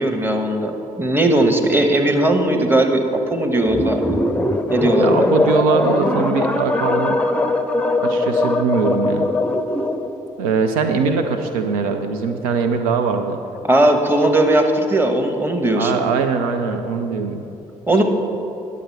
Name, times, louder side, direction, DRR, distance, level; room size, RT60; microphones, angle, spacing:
voice 1, 0.0-4.2 4.7-5.2 10.9-11.0 13.7-15.9 17.9-18.0, right 1 dB, 10° right, 4 dB, 1.1 m, -18 dB
sound 1, 3.7-10.1, left 2 dB, 5° left, 0.6 m, -20 dB
voice 2, 5.0-7.2 8.0-9.3 10.4-13.4 15.7-17.5, right 5 dB, 80° right, 6 dB, 0.5 m, -21 dB
10.0 x 6.9 x 4.6 m, 2.9 s
hypercardioid pair, 45°, 18 cm